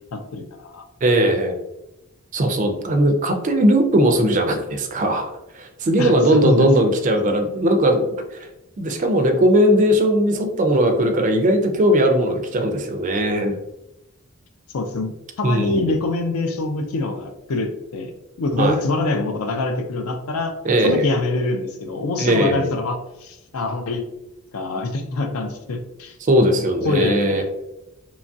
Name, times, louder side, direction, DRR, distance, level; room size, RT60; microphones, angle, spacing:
voice 1, 0.1-0.8 6.0-6.7 7.2-7.4 14.7-18.1 18.4-20.5 20.8-24.0 24.5-26.2 26.4-27.4, left 2 dB, 80° left, 6 dB, 0.4 m, -25 dB
voice 2, 1.0-1.6 2.3-8.5 8.8-13.5 15.4-15.9 18.6-18.8 20.6-21.1 22.2-22.7 26.2-27.4, right 1 dB, 35° right, 5 dB, 0.3 m, -19 dB
3.0 x 2.3 x 2.6 m, 0.91 s
head